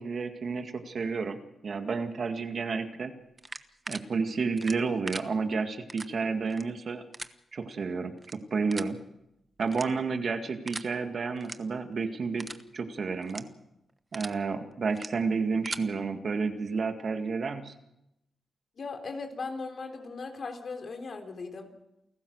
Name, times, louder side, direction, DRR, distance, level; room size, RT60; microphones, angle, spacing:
voice 1, 0.0-1.4 1.6-3.1 3.9-7.0 7.5-9.0 9.6-12.5 12.7-13.5 14.1-17.7, right 4 dB, 60° right, 7 dB, 2.0 m, -31 dB
sound 1, 3.4-4.0 4.6-5.2 5.9-6.1 6.5-6.6 7.1-7.3 8.2-8.3 8.7-8.9 9.7-10.1 10.7-10.9 11.4-11.5 11.9-12.0 12.4-12.6 13.2-13.4 13.9-14.3 14.9-15.1 15.5-15.8, right 2 dB, 25° right, 1.1 m, -39 dB
voice 2, 18.8-21.7, left 4 dB, 60° left, 5 dB, 3.8 m, -38 dB
28.5 x 15.0 x 6.6 m, 0.86 s
cardioid pair, 80°, 0 cm